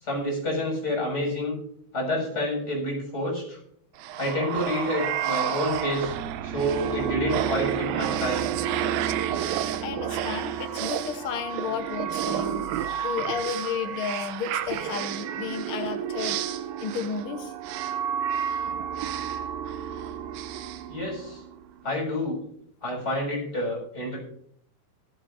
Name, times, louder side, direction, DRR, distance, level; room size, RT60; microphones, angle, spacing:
voice 1, 0.0-1.6 1.9-3.6 4.2-6.1 6.4-8.5 20.9-21.4 21.8-22.4 22.8-24.2, left 1 dB, 25° left, -2 dB, 7.5 m, -28 dB
sound 1, 4.0-21.6, right 9 dB, 85° right, 2.4 m, -30 dB
voice 2, 9.8-16.4 16.8-17.5, left 6 dB, 80° left, 5 dB, 1.2 m, -33 dB
17.5 x 14.5 x 2.6 m, 0.65 s
omnidirectional pair, 4.1 m